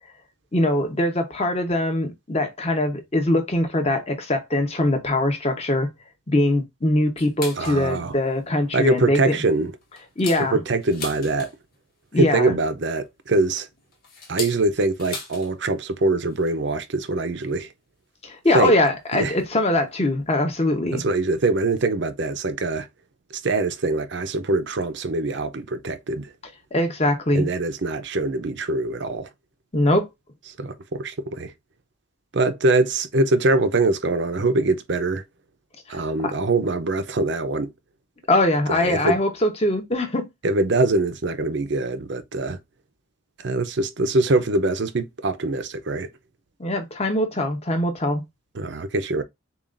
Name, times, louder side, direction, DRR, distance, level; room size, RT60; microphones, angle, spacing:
voice 1, 0.5-5.9 6.3-9.2 10.2-10.6 12.1-12.6 18.2-21.0 26.7-27.5 29.7-30.1 35.9-36.3 38.3-40.3 46.6-48.2, left 1 dB, 30° left, 1.0 m, -22 dB
sound 1, 7.2-7.8 8.3-8.4 8.8-9.0 9.5-11.8 13.0-15.5 15.8-15.9 16.2-16.5 17.4-17.5 18.4-18.5 19.4-19.5 19.9-20.0 20.1-20.3, left 4 dB, 45° left, 1.6 m, -38 dB
voice 2, 7.6-8.1 8.7-9.7 10.4-11.5 12.2-13.7 14.3-17.7 18.5-18.7 19.1-19.4 20.9-22.9 23.3-26.3 27.3-29.3 30.6-31.5 32.3-35.2 35.9-37.7 38.7-39.2 40.4-42.6 43.4-46.1 48.5-49.2, right 2 dB, 55° right, 0.6 m, -23 dB
7.0 x 2.4 x 2.5 m
head